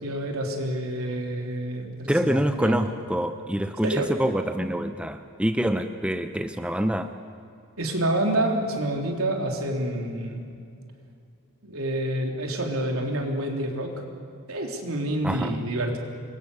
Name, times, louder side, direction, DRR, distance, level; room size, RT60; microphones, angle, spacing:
voice 1, 0.0-2.7 3.8-4.1 7.8-10.4 11.6-13.9 14.5-16.0, right 1 dB, 75° right, 2 dB, 3.6 m, -28 dB
voice 2, 2.1-7.1 15.2-15.6, equal, 5° right, 8 dB, 0.7 m, -26 dB
26.5 x 23.0 x 6.8 m, 2.5 s
head